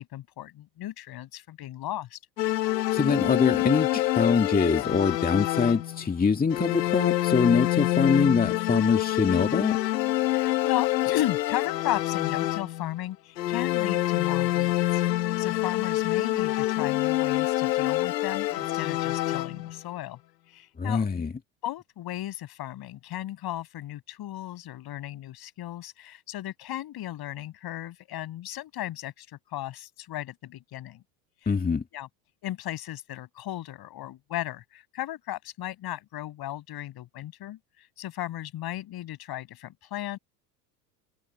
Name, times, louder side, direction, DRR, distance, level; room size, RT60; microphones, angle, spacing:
voice 1, 0.0-2.2 9.3-9.5 10.2-20.2 20.5-21.2 21.6-31.0 31.9-32.1 32.4-37.6 38.0-40.2, left 13 dB, 50° left, 7.5 m, -35 dB
sound 1, 2.4-6.1 6.5-13.0 13.4-19.8, left 16 dB, 85° left, 1.9 m, -26 dB
voice 2, 2.9-9.8 20.8-21.3 31.5-31.8, left 5 dB, 20° left, 2.1 m, -24 dB
hypercardioid pair, 90°, 49 cm